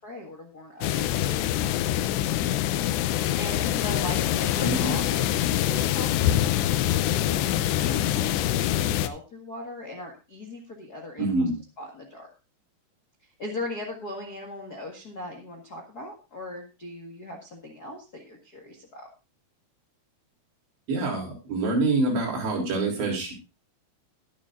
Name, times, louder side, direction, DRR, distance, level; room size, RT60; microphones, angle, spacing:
voice 1, 0.0-2.4 3.1-11.4 11.8-12.3 13.4-19.1, left 2 dB, 60° left, 2 dB, 1.0 m, -39 dB
sound 1, 0.8-9.1, left 12 dB, 90° left, 2.9 m, -25 dB
voice 2, 4.6-5.0 11.2-11.6 20.9-23.3, right 2 dB, 90° right, -1 dB, 5.6 m, -26 dB
20.5 x 7.3 x 2.6 m, 0.29 s
omnidirectional pair, 4.8 m